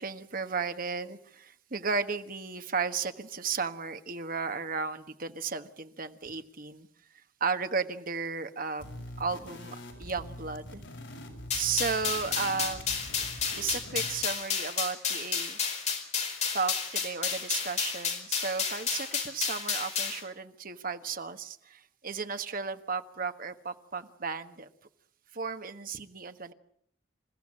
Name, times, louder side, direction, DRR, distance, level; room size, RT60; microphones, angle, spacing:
voice 1, 0.0-6.9 7.4-10.8 11.5-13.1 13.5-15.6 16.5-24.7 25.3-26.5, right 5 dB, 50° right, 9 dB, 1.4 m, -34 dB
sound 1, 8.8-14.3, left 1 dB, 75° left, 6.2 m, -44 dB
sound 2, 11.5-20.2, left 6 dB, 35° left, 4.7 m, -31 dB
28.0 x 15.0 x 8.8 m, 0.66 s
head